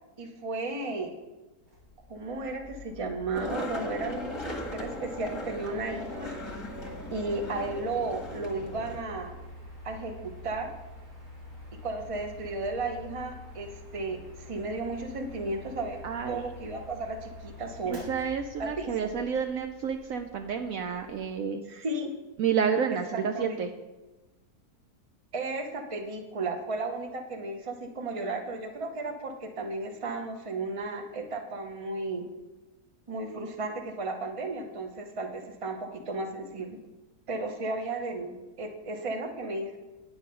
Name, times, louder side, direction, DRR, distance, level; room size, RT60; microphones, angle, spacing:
voice 1, 0.2-1.1 2.1-6.3 7.1-9.4 9.8-10.7 11.8-18.1 18.6-18.9 21.7-22.1 23.1-23.6 25.3-32.3 33.1-36.8 37.3-39.8, right 2 dB, 25° right, 5 dB, 0.8 m, -34 dB
Mechanical fan, 1.6-21.3, left 2 dB, 85° right, 3.7 m, -47 dB
Skateboard, 3.3-9.0, left 1 dB, 20° left, 1.3 m, -38 dB
voice 2, 16.0-16.4 17.9-21.6 22.4-23.7, right 7 dB, 65° right, 6 dB, 0.9 m, -30 dB
9.7 x 7.1 x 5.5 m, 1.1 s
omnidirectional pair, 1.7 m